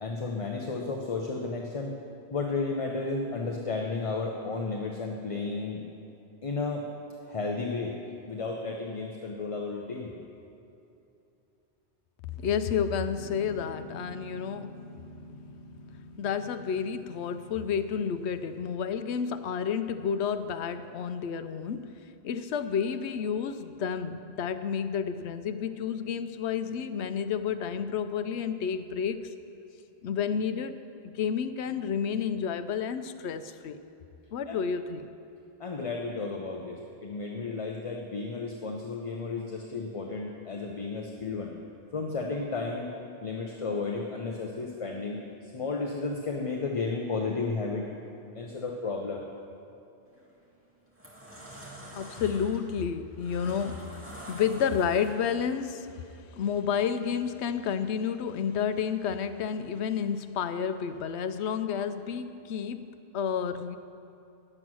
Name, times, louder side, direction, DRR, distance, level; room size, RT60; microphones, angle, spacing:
voice 1, 0.0-1.9 2.3-5.8 6.4-6.8 7.2-8.0 8.3-10.1 34.5-34.6 35.6-41.5 41.9-42.9 43.2-45.2 45.5-47.9 48.3-49.2, left 3 dB, 35° left, 0 dB, 0.7 m, -33 dB
voice 2, 12.4-15.0 15.3-15.4 16.2-29.3 30.0-33.8 34.3-35.1 51.9-63.8, left 7 dB, 80° left, 11 dB, 0.9 m, -31 dB
Piano, 13.0-18.1, equal, 55° right, 2.2 m, -47 dB
sound 1, 50.1-50.3 50.8-55.5, right 1 dB, 10° right, 1.8 m, -46 dB
11.0 x 7.8 x 6.1 m, 2.8 s
omnidirectional pair, 1.1 m